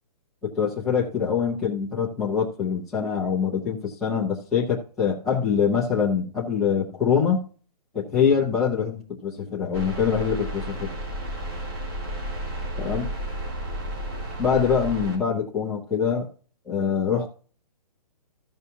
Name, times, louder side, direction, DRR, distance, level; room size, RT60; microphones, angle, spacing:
voice 1, 0.4-7.4 7.9-10.9 12.8-13.1 14.4-16.3 16.6-17.3, left 7 dB, ahead, -3 dB, 0.4 m, -24 dB
sound 1, 9.7-15.2, equal, 35° right, 3.5 m, -32 dB
15.0 x 5.5 x 2.7 m, 0.39 s
hypercardioid pair, 175°, 21 cm